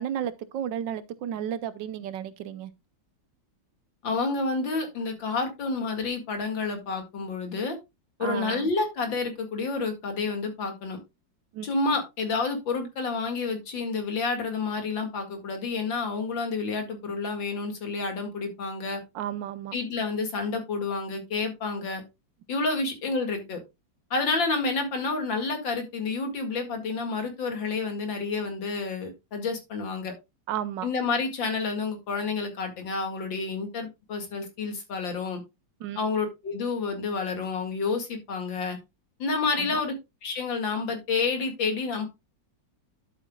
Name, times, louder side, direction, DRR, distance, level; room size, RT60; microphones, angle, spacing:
voice 1, 0.0-2.7 8.2-8.7 11.5-11.7 19.1-19.8 30.5-30.9 35.8-36.0 39.6-39.8, right 10 dB, 75° right, 1.4 m, -33 dB
voice 2, 4.0-7.8 8.2-11.0 11.6-19.0 19.7-22.0 22.5-23.6 24.1-30.1 30.8-35.4 36.0-38.8 39.2-39.9 40.2-42.1, left 4 dB, 85° left, 2.8 m, -29 dB
11.5 x 7.9 x 2.3 m
omnidirectional pair, 2.0 m